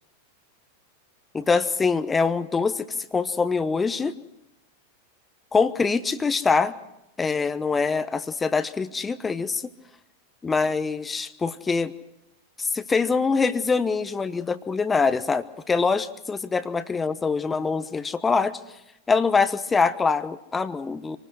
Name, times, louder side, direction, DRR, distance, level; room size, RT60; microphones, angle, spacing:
voice 1, 1.3-2.9 3.1-4.1 5.5-6.7 7.2-9.6 10.4-11.9 12.6-18.6 19.1-21.2, left 4 dB, 15° left, 12 dB, 1.0 m, -24 dB
26.5 x 20.0 x 6.2 m, 0.88 s
figure-of-eight pair, 90°, 0 cm